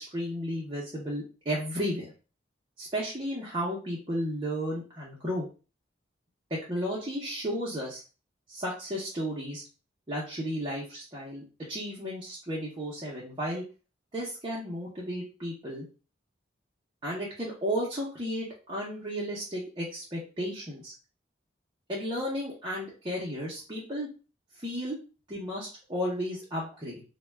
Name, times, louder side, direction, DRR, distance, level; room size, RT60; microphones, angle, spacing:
voice 1, 0.0-2.1 2.8-5.5 6.5-8.0 8.5-9.6 10.1-13.6 14.1-15.9 17.0-20.9 21.9-24.1 24.6-25.0 25.3-27.0, equal, 25° right, -5 dB, 0.6 m, -33 dB
2.1 x 2.1 x 3.2 m, 0.35 s
head